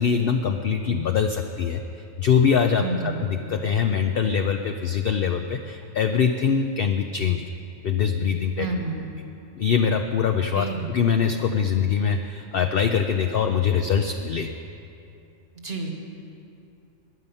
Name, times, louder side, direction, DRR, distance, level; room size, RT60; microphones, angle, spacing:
voice 1, 0.0-1.8 2.2-7.4 7.8-8.7 9.6-14.5, left 7 dB, 55° left, 5 dB, 0.7 m, -23 dB
voice 2, 2.8-3.3 8.6-9.1 10.5-10.9 15.6-15.9, right 3 dB, 50° right, 2 dB, 1.7 m, -29 dB
17.5 x 10.5 x 5.6 m, 2.7 s
omnidirectional pair, 1.4 m